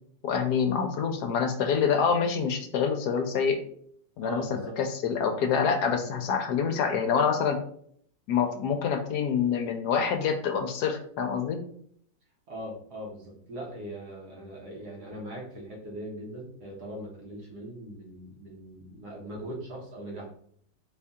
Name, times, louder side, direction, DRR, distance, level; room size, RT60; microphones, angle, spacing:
voice 1, 0.2-3.6 4.2-4.4 4.8-7.6 8.3-11.6, left 6 dB, 70° left, 5 dB, 1.0 m, -26 dB
voice 2, 4.2-4.8 12.5-20.3, right 1 dB, 60° right, -3 dB, 1.8 m, -40 dB
4.2 x 2.6 x 3.6 m, 0.62 s
omnidirectional pair, 2.0 m